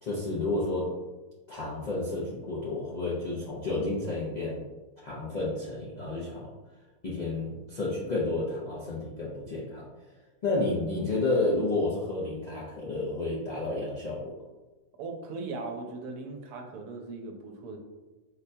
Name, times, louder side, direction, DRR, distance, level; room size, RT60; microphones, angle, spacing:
voice 1, 0.0-0.9 1.5-4.6 5.0-6.5 7.0-9.8 10.4-14.3, left 2 dB, 65° left, -7 dB, 0.4 m, -31 dB
voice 2, 15.0-17.8, right 3 dB, 90° right, 3 dB, 1.1 m, -38 dB
4.3 x 2.2 x 2.6 m, 1.2 s
omnidirectional pair, 1.6 m